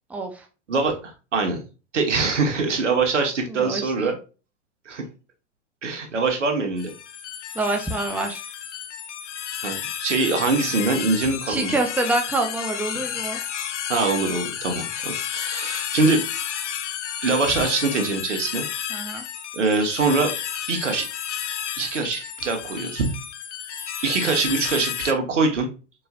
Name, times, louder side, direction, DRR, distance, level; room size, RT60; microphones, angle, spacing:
voice 1, 0.1-0.4 3.5-4.1 7.5-8.4 11.5-13.4 18.9-19.2, right 2 dB, 5° right, 3 dB, 0.6 m, -26 dB
voice 2, 0.7-1.6 1.9-4.1 4.9-5.0 5.8-6.9 9.6-11.8 13.9-16.2 17.2-18.6 19.5-20.3 20.7-21.1 21.8-23.1 24.0-25.7, right 3 dB, 75° right, 4 dB, 1.4 m, -23 dB
sound 1, 6.8-25.1, left 9 dB, 70° left, 0.7 m, -31 dB
4.6 x 4.1 x 2.3 m, 0.32 s
figure-of-eight pair, 100°, 36 cm